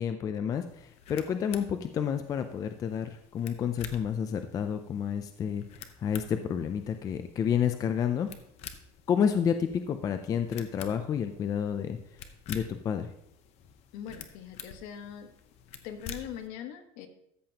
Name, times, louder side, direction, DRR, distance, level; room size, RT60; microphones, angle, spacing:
voice 1, 0.0-8.3 9.1-12.0 12.5-13.1, left 8 dB, 25° left, 8 dB, 0.4 m, -30 dB
sound 1, 0.6-16.5, left 7 dB, 45° left, 0.9 m, -49 dB
voice 2, 13.9-15.3 15.8-17.1, left 9 dB, 65° left, 6 dB, 1.4 m, -41 dB
13.5 x 7.6 x 2.9 m, 0.75 s
cardioid pair, 170°, 14 cm